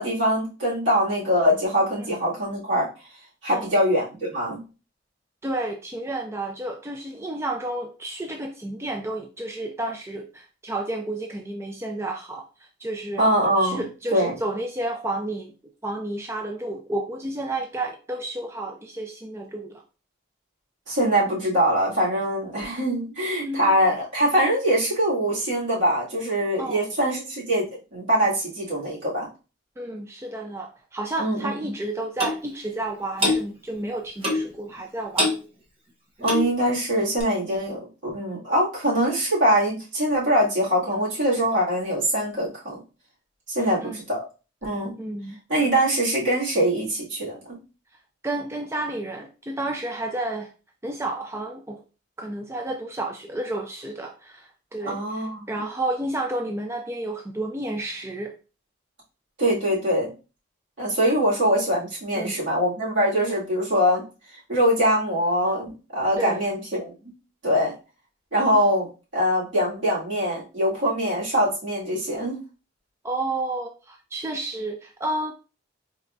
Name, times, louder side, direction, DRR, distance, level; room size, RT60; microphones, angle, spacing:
voice 1, 0.0-2.9 3.4-4.6 13.2-13.8 14.1-14.3 20.9-27.7 27.9-29.3 31.2-31.7 36.2-42.8 43.5-44.2 44.6-45.0 45.5-47.6 54.8-55.5 59.4-60.1 60.8-64.0 64.5-66.9 67.4-67.7 68.3-72.4, equal, 70° right, -7 dB, 2.2 m, -23 dB
voice 2, 5.4-13.2 13.6-15.5 15.8-19.8 23.4-23.8 26.6-26.8 29.8-35.3 40.9-41.0 43.6-44.0 45.0-45.4 48.2-50.5 50.8-51.8 52.2-58.3 62.1-62.4 66.2-66.4 73.0-75.3, right 2 dB, 15° right, 3 dB, 0.3 m, -31 dB
Clock, 32.2-32.4 33.2-33.4 34.2-34.5 35.2-35.4 36.2-36.5 37.2-37.3, left 1 dB, 30° right, 0.9 m, -23 dB
4.2 x 3.4 x 2.6 m, 0.33 s
head